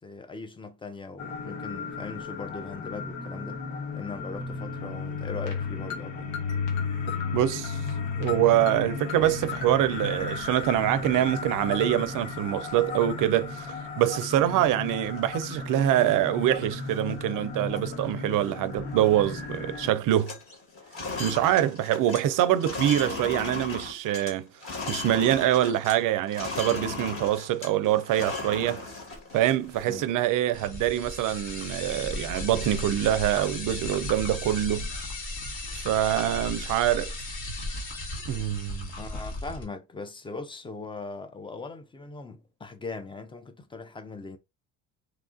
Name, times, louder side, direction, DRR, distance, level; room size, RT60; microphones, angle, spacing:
voice 1, 0.0-3.6 3.9-6.3 29.9-30.1 39.0-44.4, left 4 dB, 15° left, 0.4 m, -40 dB
sound 1, 1.2-19.9, left 4 dB, 90° left, 1.1 m, -34 dB
voice 2, 7.3-7.8 8.2-20.3 21.2-24.5 24.9-28.8 29.3-34.9 35.7-37.1 38.3-38.9, right 12 dB, 60° right, 0.5 m, -25 dB
sound 2, 15.0-16.1 16.6-16.7 16.9-17.3 17.7-17.9 18.2-19.3 19.5-19.8 20.0-26.0 26.3-30.1, left 3 dB, 35° left, 1.4 m, -37 dB
sound 3, 30.5-39.6, left 2 dB, 55° left, 1.3 m, -36 dB
2.9 x 2.3 x 2.5 m
cardioid pair, 100°, 37 cm